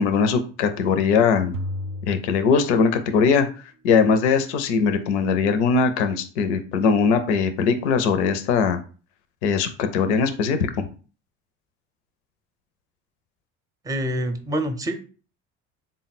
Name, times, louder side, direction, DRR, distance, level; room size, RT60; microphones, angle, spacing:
voice 1, 0.0-1.5 2.1-3.5 3.8-8.8 9.4-10.9, left 5 dB, 85° left, 9 dB, 0.5 m, -20 dB
sound 1, 1.5-3.3, left 1 dB, 55° right, 0.5 m, -34 dB
voice 2, 13.8-15.0, right 1 dB, 10° right, 9 dB, 0.6 m, -26 dB
3.7 x 2.1 x 4.0 m, 0.37 s
hypercardioid pair, 75°, 33 cm